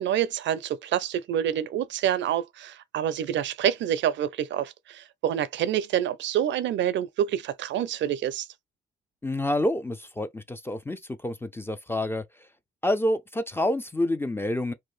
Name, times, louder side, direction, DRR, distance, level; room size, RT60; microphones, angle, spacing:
voice 1, 0.0-8.5, right 10 dB, 70° right, 0.4 m, -27 dB
voice 2, 9.2-12.2 12.8-14.7, left 1 dB, 10° left, 0.3 m, -28 dB
2.6 x 2.2 x 3.1 m
cardioid pair, 90°, 20 cm